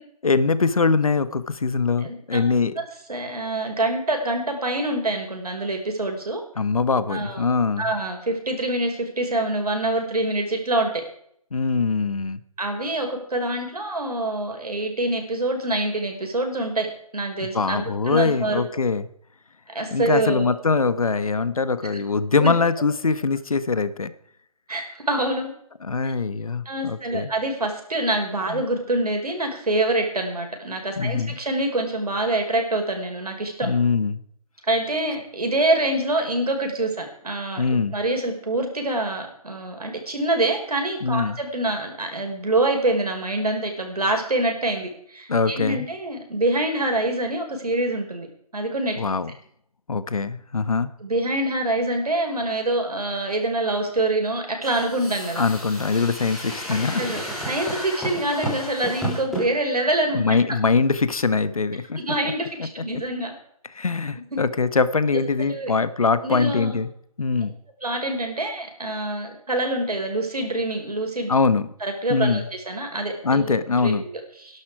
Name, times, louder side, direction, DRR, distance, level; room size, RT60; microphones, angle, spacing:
voice 1, 0.2-2.7 6.6-7.9 11.5-12.4 17.4-19.1 19.9-24.1 25.8-27.3 28.5-28.6 31.0-31.4 33.6-34.2 37.6-37.9 41.0-41.4 45.3-45.9 49.0-49.3 49.9-50.9 55.4-57.0 60.1-62.3 63.7-66.9 67.2-67.5 71.3-71.7 72.1-72.5 73.2-74.0, left 4 dB, 65° left, 14 dB, 1.4 m, -22 dB
voice 2, 2.0-2.4 2.8-6.4 7.1-7.4 7.8-11.0 12.6-16.9 17.1-18.6 19.7-20.5 22.4-22.5 24.7-25.5 26.7-33.7 34.7-37.6 37.9-48.3 48.5-49.0 51.0-55.5 57.0-57.2 57.5-60.2 62.0-63.3 64.3-64.4 65.4-65.7 66.2-66.8 67.8-71.3 71.8-73.4 73.7-74.6, right 1 dB, 80° right, 3 dB, 5.4 m, -25 dB
sound 1, 54.6-59.5, right 1 dB, ahead, 3.4 m, -32 dB
19.5 x 11.5 x 5.0 m, 0.68 s
figure-of-eight pair, 165°, 19 cm